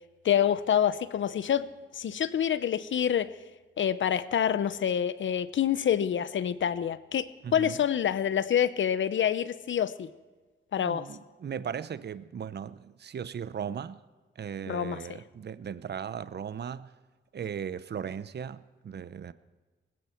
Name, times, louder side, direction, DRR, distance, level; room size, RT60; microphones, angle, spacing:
voice 1, 0.2-1.7 1.9-3.3 3.8-10.1 10.7-11.1 14.7-15.0, left 9 dB, 70° left, 0.8 m, -27 dB
voice 2, 7.4-7.8 10.8-14.0 14.4-16.9 17.3-19.3, right 8 dB, 55° right, 0.8 m, -37 dB
20.0 x 15.5 x 4.5 m
cardioid pair, 75°, 20 cm